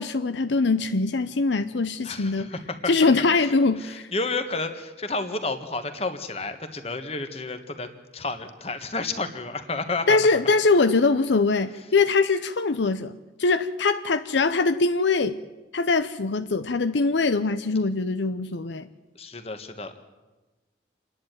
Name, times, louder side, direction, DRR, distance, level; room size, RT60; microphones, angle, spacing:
voice 1, 0.0-2.5 2.9-4.1 10.1-13.1 13.4-15.4 15.7-18.9, left 3 dB, 75° left, 0.7 m, -22 dB
voice 2, 2.0-2.6 3.8-7.9 8.1-10.2 19.2-20.0, left 3 dB, 30° left, 1.6 m, -31 dB
28.0 x 11.0 x 9.2 m
head